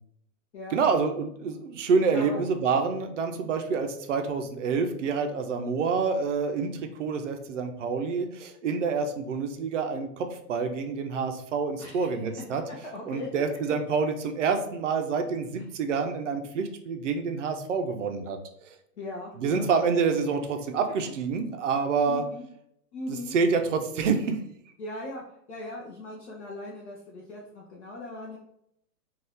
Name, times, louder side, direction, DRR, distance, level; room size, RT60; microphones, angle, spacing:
voice 1, 0.7-12.6 13.1-18.7 19.4-22.2 23.1-24.4, right 5 dB, 55° right, 6 dB, 0.5 m, -27 dB
voice 2, 11.8-12.5 12.9-13.3 19.0-19.7 22.1-22.4 22.9-23.3 24.8-25.2 25.5-28.4, left 2 dB, 45° left, -3 dB, 0.6 m, -39 dB
2.6 x 2.4 x 3.4 m, 0.73 s
hypercardioid pair, 155°, 47 cm